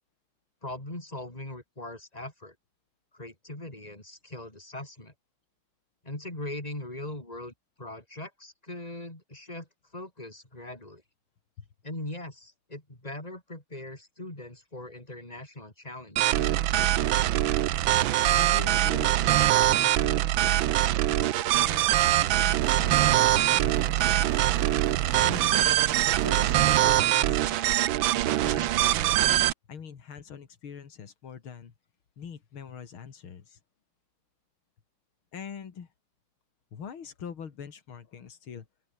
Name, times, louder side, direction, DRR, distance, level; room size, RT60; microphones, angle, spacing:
voice 1, 0.6-2.6 3.1-5.1 6.0-9.7 9.9-11.0 11.8-16.6, left 1 dB, 20° left, 5.3 m, -40 dB
sound 1, 16.2-29.5, right 13 dB, 75° right, 1.5 m, -23 dB
voice 2, 18.2-19.2 19.6-20.6 21.5-22.1 22.7-24.1 25.2-25.8 26.1-27.6 28.4-29.1 29.7-31.7 32.2-33.6 35.3-35.9 36.7-38.7, left 7 dB, 90° left, 2.9 m, -43 dB
sound 2, 22.6-27.0, right 11 dB, 60° right, 1.2 m, -36 dB
omnidirectional pair, 2.2 m